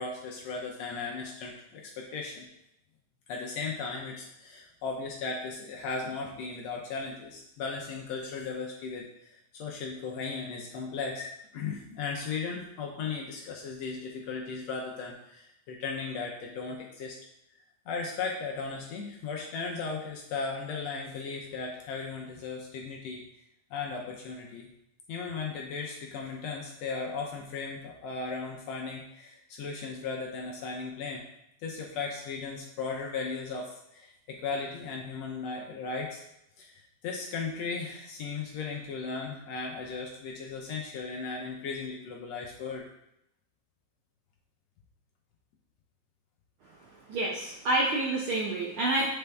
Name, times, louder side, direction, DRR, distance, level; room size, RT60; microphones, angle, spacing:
voice 1, 0.0-2.5 3.3-17.2 17.9-23.2 23.7-24.7 25.1-31.2 31.6-36.2 36.6-42.9, left 4 dB, 75° left, -1 dB, 1.8 m, -36 dB
voice 2, 47.1-49.1, right 2 dB, 90° right, -3 dB, 1.1 m, -28 dB
8.0 x 4.3 x 3.4 m, 0.84 s
omnidirectional pair, 3.4 m